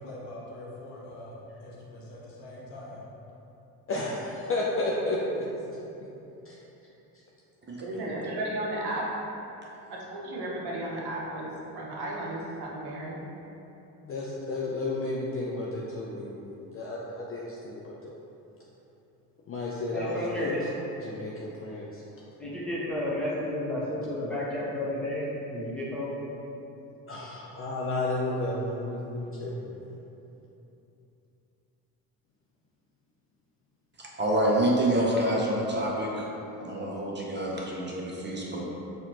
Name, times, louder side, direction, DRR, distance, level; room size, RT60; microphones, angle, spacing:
voice 1, 0.0-3.0, left 1 dB, 70° left, -4 dB, 1.0 m, -43 dB
voice 2, 3.9-5.8 6.5-6.6 14.0-18.1 19.5-20.5 21.0-22.0 27.1-30.0, left 2 dB, 30° left, -4 dB, 0.4 m, -32 dB
voice 3, 7.8-9.1 9.9-13.2, right 1 dB, 60° right, -3 dB, 0.9 m, -34 dB
voice 4, 19.9-20.6 22.4-26.2, left 1 dB, ahead, -8 dB, 1.1 m, -31 dB
voice 5, 34.0-36.2 36.6-38.6, right 1 dB, 25° right, -4 dB, 0.7 m, -27 dB
4.2 x 2.5 x 2.9 m, 2.9 s
hypercardioid pair, 60°, 45 cm